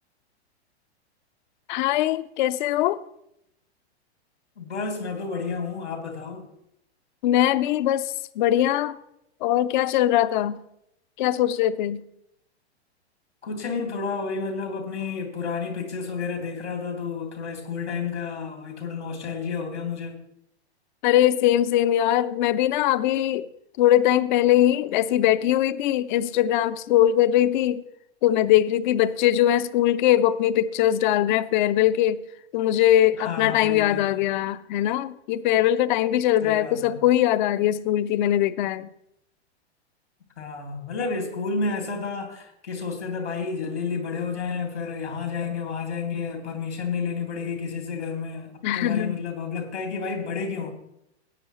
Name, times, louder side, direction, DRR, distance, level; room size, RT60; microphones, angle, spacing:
voice 1, 1.7-3.0 7.2-9.0 9.4-10.6 11.2-12.0 21.0-23.5 23.8-27.8 28.2-32.2 32.5-38.9 48.6-49.2, left 12 dB, 45° left, 0.6 m, -21 dB
voice 2, 4.6-6.4 13.4-20.2 33.2-34.0 36.4-36.9 40.4-50.7, left 5 dB, 85° left, 2.8 m, -31 dB
17.0 x 9.0 x 3.1 m
hypercardioid pair, 115°, 33 cm